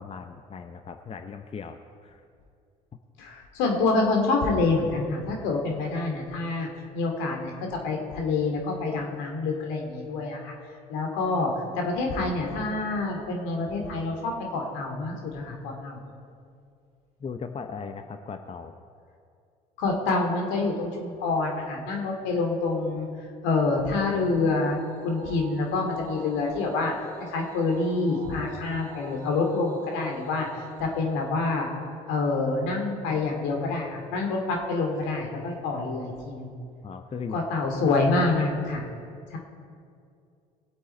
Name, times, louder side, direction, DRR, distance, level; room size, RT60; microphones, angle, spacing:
voice 1, 0.0-1.8 2.0-2.2 17.2-18.7 36.8-37.4 37.9-38.2, left 5 dB, 30° left, 7 dB, 0.8 m, -38 dB
voice 2, 3.2-10.5 10.9-16.0 19.8-23.1 23.4-24.8 25.0-26.9 27.3-31.7 32.1-36.6 37.3-38.8 39.3-39.4, left 3 dB, 70° left, 2 dB, 2.4 m, -27 dB
sound 1, 23.9-32.5, right 3 dB, 80° right, 2.4 m, -46 dB
20.0 x 8.1 x 4.4 m, 2.4 s
hypercardioid pair, 60°, 20 cm